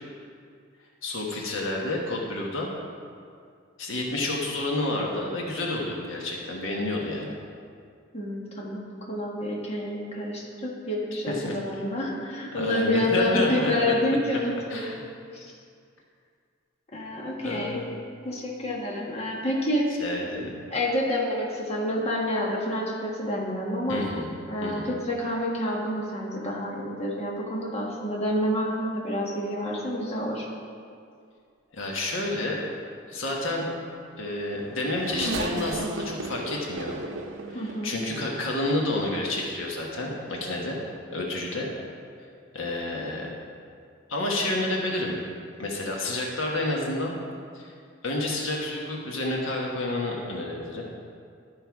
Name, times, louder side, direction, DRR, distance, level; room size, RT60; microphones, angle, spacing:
voice 1, 1.0-2.7 3.8-7.4 11.3-11.6 12.5-13.7 14.7-15.0 17.4-17.9 20.0-20.5 23.9-24.3 24.6-24.8 31.7-32.7 33.1-33.6 34.2-37.0 37.5-40.8 41.1-41.7 42.5-43.3 44.1-45.2 45.6-47.1 47.5-47.7 48.0-50.8, left 2 dB, 75° left, -2 dB, 1.4 m, -29 dB
voice 2, 8.1-14.9 15.3-15.5 16.9-17.8 18.2-19.9 20.4-24.0 24.5-30.5 37.5-37.9, left 1 dB, 35° left, -3 dB, 1.5 m, -28 dB
Race car auto racing / Accelerating revving vroom, 34.2-38.7 39.4-39.5 40.6-40.8, right 2 dB, 70° right, 0.8 m, -35 dB
12.5 x 5.6 x 4.7 m, 2.2 s
head